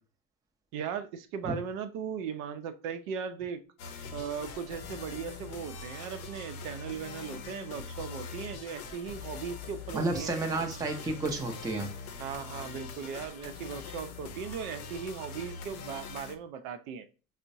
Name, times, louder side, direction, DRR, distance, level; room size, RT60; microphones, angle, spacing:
voice 1, 0.7-3.6 4.1-10.3 12.2-17.0, right 7 dB, 70° right, 8 dB, 0.6 m, -38 dB
sound 1, 3.8-16.4, left 5 dB, 90° left, 0.6 m, -43 dB
voice 2, 9.9-11.9, right 2 dB, 10° right, 2 dB, 0.5 m, -31 dB
4.4 x 2.1 x 2.5 m, 0.34 s
hypercardioid pair, 95°, 42 cm